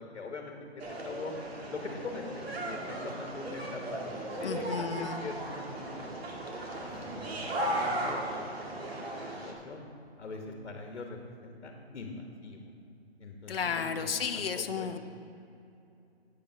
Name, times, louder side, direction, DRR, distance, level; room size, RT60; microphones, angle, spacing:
voice 1, 0.0-1.3 1.7-4.1 4.4-6.1 6.9-9.2 9.4-9.8 10.2-12.6 13.2-14.9, left 3 dB, 75° left, 2 dB, 1.4 m, -43 dB
sound 1, 0.8-9.5, right 1 dB, 60° right, 2.0 m, -36 dB
voice 2, 4.4-5.2 13.5-15.0, left 6 dB, 55° left, 7 dB, 0.8 m, -33 dB
8.7 x 8.5 x 5.6 m, 2.7 s
hypercardioid pair, 170°, 34 cm